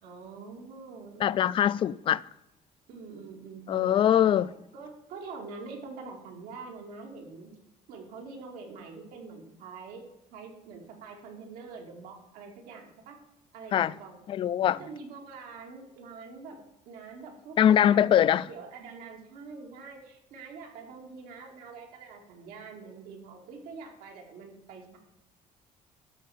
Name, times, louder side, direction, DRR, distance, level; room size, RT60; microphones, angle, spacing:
voice 1, 0.0-1.7 2.9-4.0 4.3-4.4 4.7-7.5 7.9-13.2 13.5-14.2 14.6-16.6 16.9-17.6 17.9-18.1 18.5-25.0, right 4 dB, 85° right, 2.4 m, -45 dB
voice 2, 1.2-2.2 3.7-4.5 13.7-13.9 14.3-14.8 17.6-18.5, left 10 dB, 35° left, 0.3 m, -22 dB
12.5 x 4.5 x 7.3 m
cardioid pair, 145°, 14 cm